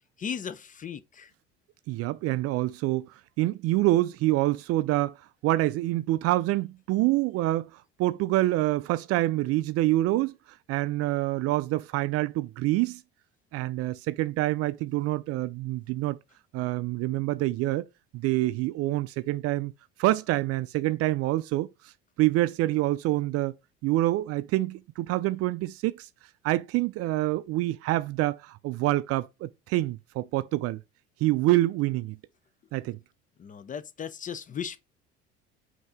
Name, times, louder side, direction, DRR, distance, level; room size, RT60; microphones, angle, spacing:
voice 1, 0.2-1.3 33.4-34.8, left 7 dB, 25° left, 0.4 m, -36 dB
voice 2, 1.9-3.1 3.4-5.1 5.4-7.7 8.0-10.3 10.7-13.0 13.5-16.2 16.5-17.9 18.1-19.7 20.0-21.7 22.2-23.5 23.8-26.1 26.4-30.8 31.2-32.2 32.7-33.0, right 17 dB, 50° right, 0.4 m, -26 dB
5.4 x 2.8 x 3.5 m
hypercardioid pair, 60°, 32 cm